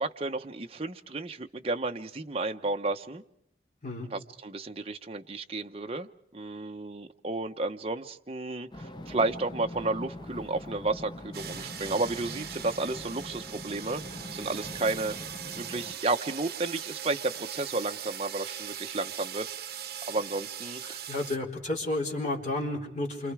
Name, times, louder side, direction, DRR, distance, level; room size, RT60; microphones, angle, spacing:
voice 1, 0.0-3.2 4.1-14.0 14.3-15.1 15.5-20.8, right 2 dB, 35° right, 5 dB, 0.9 m, -32 dB
sound 1, 8.7-16.0, left 1 dB, 25° left, 0.8 m, -43 dB
sound 2, 11.3-21.4, right 9 dB, 60° right, 1.2 m, -40 dB
voice 2, 20.8-23.3, left 2 dB, 40° left, 0 dB, 4.1 m, -32 dB
28.5 x 26.0 x 4.9 m, 0.74 s
head